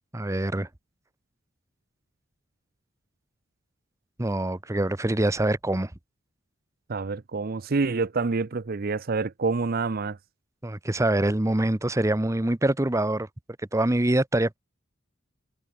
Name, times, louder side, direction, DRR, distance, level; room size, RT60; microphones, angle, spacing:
voice 1, 0.1-0.7 4.2-5.9 10.6-13.3 13.7-14.6, right 1 dB, 15° right, 0.7 m, -24 dB
voice 2, 6.9-10.2, right 4 dB, 45° right, 0.6 m, -27 dB
head